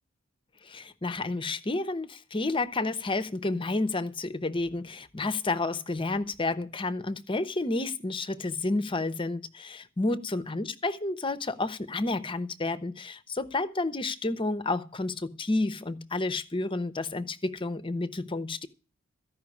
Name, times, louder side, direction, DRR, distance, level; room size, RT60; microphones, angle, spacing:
voice 1, 0.6-18.7, left 2 dB, 25° left, 0.8 m, -30 dB
14.5 x 5.7 x 9.6 m
head